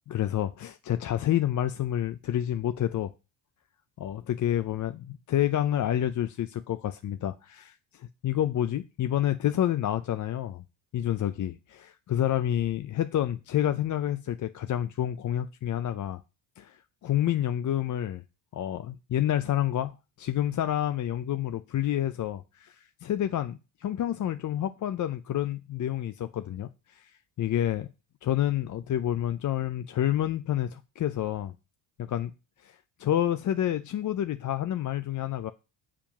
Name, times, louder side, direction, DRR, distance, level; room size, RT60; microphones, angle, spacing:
voice 1, 0.1-3.1 4.0-10.6 10.9-16.2 16.6-18.2 18.5-27.1 27.4-27.9 28.2-31.5 32.0-32.3 32.6-35.5, left 11 dB, 40° left, 0.5 m, -29 dB
7.1 x 4.9 x 5.9 m
cardioid pair, 110°, 48 cm